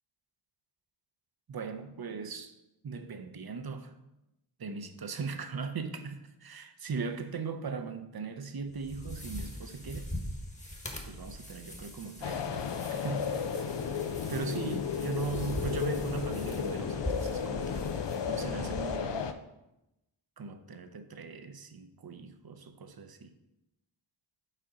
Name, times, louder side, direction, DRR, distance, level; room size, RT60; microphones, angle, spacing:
voice 1, 1.5-2.6 2.8-4.0 4.6-10.1 11.0-13.4 14.3-17.9 18.3-19.3 20.4-23.3, right 4 dB, 55° right, 0.7 m, -39 dB
sound 1, 8.7-19.0, equal, 15° left, 1.2 m, -42 dB
sound 2, 12.2-19.3, left 7 dB, 65° left, 0.6 m, -34 dB
6.5 x 4.3 x 3.8 m
cardioid pair, 40°, 46 cm